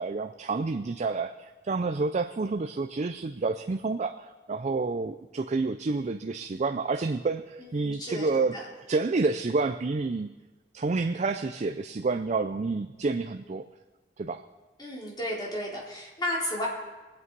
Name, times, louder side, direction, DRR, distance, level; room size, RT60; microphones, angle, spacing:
voice 1, 0.0-8.6 8.9-10.3 10.7-13.7 14.2-14.4, right 3 dB, 40° right, 7 dB, 0.4 m, -29 dB
voice 2, 7.6-8.6 14.8-16.7, left 1 dB, 25° left, -4 dB, 3.6 m, -33 dB
23.0 x 8.5 x 4.7 m, 1.2 s
head